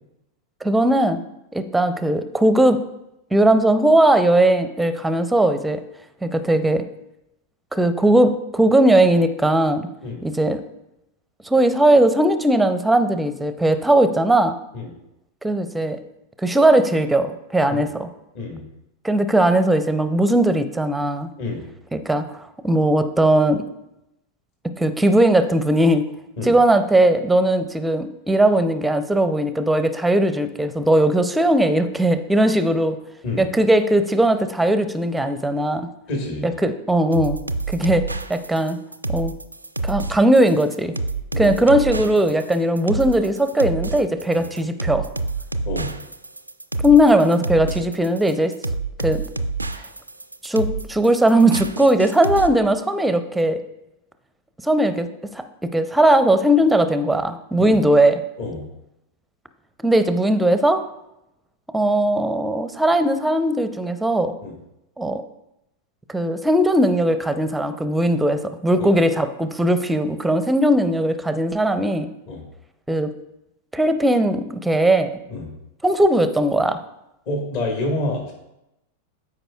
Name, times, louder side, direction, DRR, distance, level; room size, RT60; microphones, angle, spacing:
voice 1, 0.6-1.2 1.5-2.8 3.3-5.8 6.2-6.8 7.7-9.9 10.2-10.6 11.4-14.5 15.4-16.0 16.4-18.1 19.0-21.3 21.9-23.6 24.8-26.1 26.4-33.0 33.4-35.9 36.4-37.4 37.7-38.0 38.3-38.8 39.1-39.3 39.8-40.9 41.4-45.1 46.8-48.5 49.0-49.2 50.4-53.6 54.6-55.1 55.3-55.4 55.7-58.2 59.8-60.8 61.7-64.3 65.0-65.2 66.1-72.1 72.9-73.1 73.7-75.1 75.8-76.8, right 1 dB, 5° right, 10 dB, 0.6 m, -18 dB
voice 2, 36.1-36.5 41.3-41.9 44.3-44.4 45.6-46.0 57.6-57.8 58.4-58.6 64.4-64.5 68.8-68.9 72.3-72.4 75.3-75.5 77.2-78.3, left 2 dB, 45° left, 1 dB, 1.6 m, -28 dB
sound 1, 37.1-52.5, right 3 dB, 85° right, 0.4 m, -28 dB
13.0 x 5.0 x 2.4 m, 0.88 s
figure-of-eight pair, 90°, 0 cm